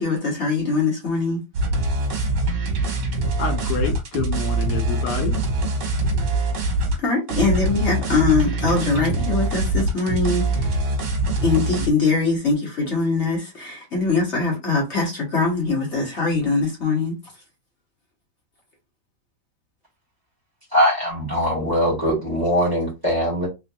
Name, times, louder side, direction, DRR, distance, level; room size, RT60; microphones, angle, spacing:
voice 1, 0.0-1.4 7.0-10.9 11.4-17.4, left 4 dB, 45° left, 1.4 m, -22 dB
sound 1, 1.5-7.0 7.3-11.9, right 2 dB, 85° right, 1.7 m, -23 dB
voice 2, 3.4-5.4, left 6 dB, 70° left, 1.3 m, -27 dB
voice 3, 20.7-23.5, equal, 15° right, 1.7 m, -21 dB
3.6 x 3.2 x 2.2 m
omnidirectional pair, 1.8 m